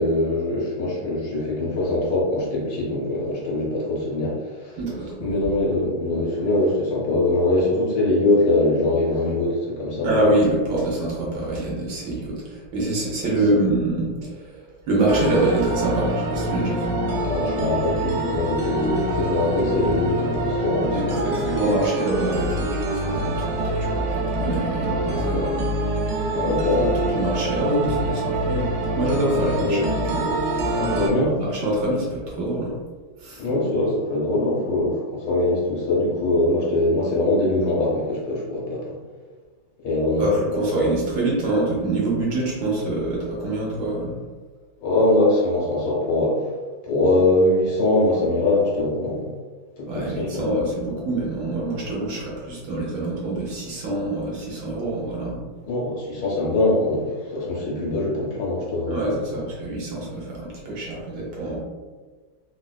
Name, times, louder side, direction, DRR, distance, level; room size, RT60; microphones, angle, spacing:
voice 1, 0.0-4.8 5.2-10.1 12.1-12.2 13.2-13.4 17.1-21.6 26.3-26.9 29.3-29.8 30.8-31.3 33.4-38.9 39.8-40.3 44.8-46.4 46.8-49.3 49.8-50.4 55.7-59.5, left 2 dB, 70° left, -4 dB, 1.7 m, -22 dB
voice 2, 4.8-5.3 10.0-17.0 20.9-25.8 26.8-26.9 27.1-30.3 30.9-32.8 33.2-33.4 40.2-44.2 49.9-55.4 58.9-61.6, right 2 dB, 70° right, -5 dB, 1.5 m, -25 dB
sound 1, 15.1-31.1, right 1 dB, 90° right, 0.8 m, -25 dB
4.1 x 2.5 x 2.2 m, 1.4 s
omnidirectional pair, 2.4 m